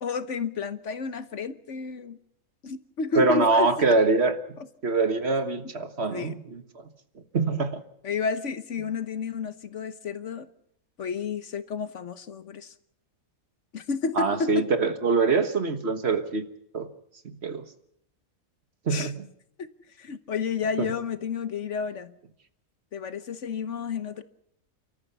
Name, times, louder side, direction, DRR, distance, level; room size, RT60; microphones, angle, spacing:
voice 1, 0.0-2.2 2.6-3.9 6.1-6.4 8.0-10.5 11.0-12.7 13.7-14.7 18.9-19.1 19.6-19.7 20.0-22.1 22.9-24.2, left 5 dB, 60° left, 12 dB, 1.3 m, -31 dB
voice 2, 3.1-4.4 4.8-6.8 7.3-7.8 14.2-16.4 16.7-16.9 17.2-17.6 18.9-19.2 20.8-20.9, right 3 dB, 50° right, 10 dB, 1.6 m, -24 dB
30.0 x 14.0 x 6.9 m, 0.74 s
omnidirectional pair, 1.5 m